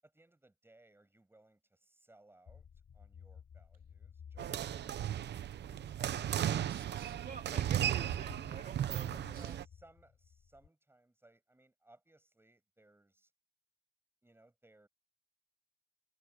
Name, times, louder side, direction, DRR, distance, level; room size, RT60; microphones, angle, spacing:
voice 1, 0.0-2.7 2.9-5.9 7.5-7.6 8.9-13.3 14.2-14.9, right 2 dB, 10° right, 6.7 m, -62 dB
sound 1, 2.5-10.7, left 7 dB, 55° left, 3.4 m, -56 dB
sound 2, 4.4-9.6, right 11 dB, 60° right, 0.9 m, -35 dB
voice 2, 6.0-9.1 9.3-9.5, right 6 dB, 45° right, 2.7 m, -50 dB
cardioid pair, 90°, 20 cm